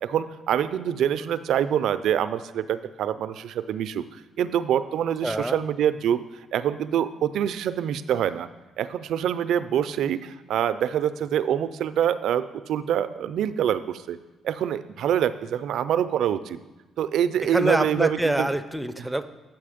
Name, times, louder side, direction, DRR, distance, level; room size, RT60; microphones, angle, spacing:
voice 1, 0.0-6.2 6.5-8.5 8.8-14.2 14.4-16.6 17.0-18.5, right 9 dB, 75° right, 13 dB, 0.3 m, -25 dB
voice 2, 5.2-5.6 17.5-19.4, right 1 dB, 5° right, 10 dB, 0.4 m, -25 dB
7.5 x 5.7 x 5.0 m, 1.1 s
cardioid pair, 90°, 0 cm